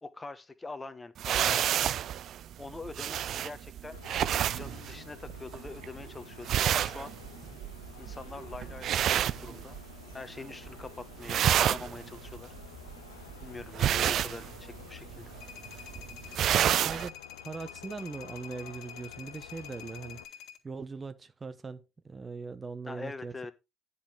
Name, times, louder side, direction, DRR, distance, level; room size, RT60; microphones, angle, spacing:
voice 1, 0.0-1.7 2.6-4.0 4.5-7.1 8.0-9.8 10.1-12.5 13.4-15.3 22.9-23.5, left 3 dB, 20° left, 1.2 m, -43 dB
sound 1, 1.2-10.1 10.4-10.9 11.1-17.1, right 10 dB, 50° right, 0.4 m, -30 dB
sound 2, 3.9-20.2, left 10 dB, 80° left, 0.8 m, -51 dB
sound 3, 15.4-20.6, left 9 dB, 60° left, 1.8 m, -47 dB
voice 2, 16.5-23.5, right 4 dB, 25° right, 0.8 m, -41 dB
10.5 x 5.4 x 4.8 m
figure-of-eight pair, 55°, 0 cm